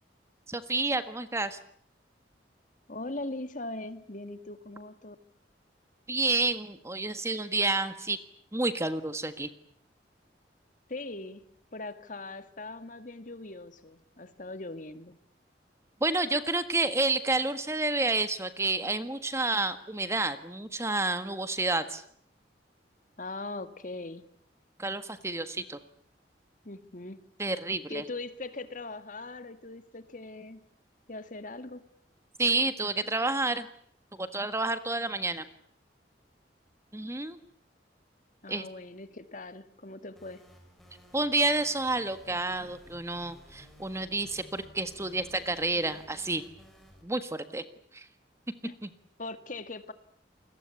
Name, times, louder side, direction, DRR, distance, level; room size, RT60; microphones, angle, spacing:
voice 1, 0.5-1.6 6.1-8.2 8.5-9.5 16.0-22.0 24.8-25.8 27.4-28.0 32.4-33.7 34.1-35.4 36.9-37.4 38.5-38.7 41.1-46.4 47.0-47.6 47.9-48.1 48.8-48.9, right 2 dB, 15° right, 11 dB, 1.6 m, -29 dB
voice 2, 2.9-5.2 10.9-11.4 11.7-15.2 23.2-24.2 26.6-27.2 27.9-30.6 31.1-31.9 38.4-40.4 48.6-48.7 49.2-49.9, left 2 dB, 45° left, 11 dB, 1.9 m, -40 dB
sound 1, 40.2-47.0, equal, ahead, 6.6 m, -55 dB
29.5 x 21.5 x 8.4 m, 0.64 s
head